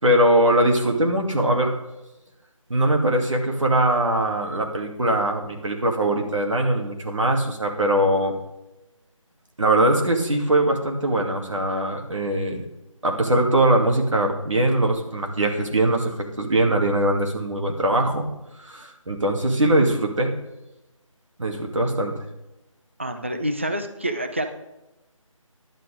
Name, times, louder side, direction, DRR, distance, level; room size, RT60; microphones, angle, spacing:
voice 1, 0.0-1.7 2.7-8.3 9.6-12.6 13.0-18.3 18.6-20.3 21.4-22.1, right 1 dB, 65° right, 2 dB, 2.4 m, -21 dB
voice 2, 23.0-24.4, right 1 dB, 20° right, 6 dB, 0.6 m, -27 dB
11.0 x 8.5 x 5.1 m, 0.96 s
figure-of-eight pair, 175°, 17 cm